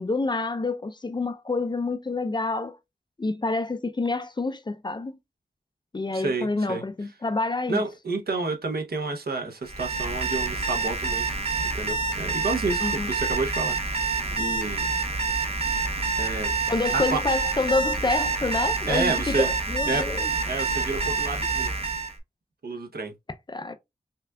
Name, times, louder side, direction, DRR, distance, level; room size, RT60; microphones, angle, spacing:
voice 1, 0.0-2.8 3.2-5.1 5.9-7.8 12.8-13.1 16.7-20.3 23.5-23.7, left 3 dB, 30° left, 0.4 m, -27 dB
voice 2, 6.1-6.8 7.7-11.2 11.7-14.9 16.2-16.5 16.9-17.2 18.9-19.5 19.9-21.7 22.6-23.1, right 3 dB, 75° right, 0.8 m, -30 dB
Alarm, 9.7-22.1, right 4 dB, 40° right, 0.7 m, -27 dB
5.5 x 2.4 x 2.2 m
wide cardioid pair, 85°, 16 cm